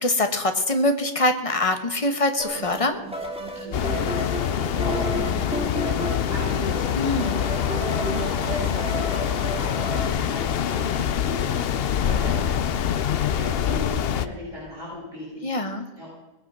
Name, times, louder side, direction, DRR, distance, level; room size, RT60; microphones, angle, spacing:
voice 1, 0.0-3.0 7.0-7.4 15.4-15.9, left 2 dB, 25° left, 7 dB, 1.1 m, -23 dB
sound 1, 2.4-10.1, equal, 5° right, 2.0 m, -32 dB
voice 2, 3.6-15.5 15.9-16.1, equal, 50° right, -9 dB, 7.4 m, -37 dB
sound 2, 3.7-14.3, left 9 dB, 65° left, 0.6 m, -25 dB
20.0 x 8.7 x 6.1 m, 1.1 s
omnidirectional pair, 1.6 m